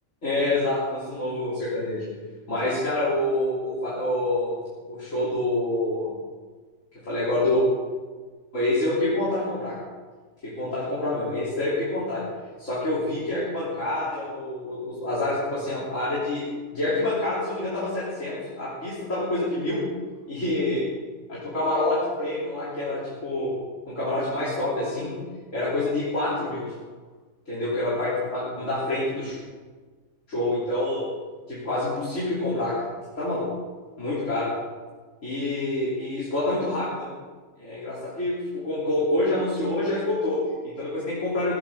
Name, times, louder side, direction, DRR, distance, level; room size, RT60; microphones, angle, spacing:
voice 1, 0.2-2.0 2.5-4.5 4.9-6.1 7.1-7.6 8.5-9.8 10.4-12.2 12.6-16.5 16.7-19.8 20.3-20.8 21.3-23.5 23.9-25.1 25.5-26.7 27.5-29.4 30.3-31.0 31.5-32.8 33.2-33.5 34.0-34.5 35.2-37.1 37.6-41.6, left 1 dB, 60° left, -9 dB, 3.6 m, -27 dB
16.5 x 14.0 x 3.7 m, 1.4 s
omnidirectional pair, 1.5 m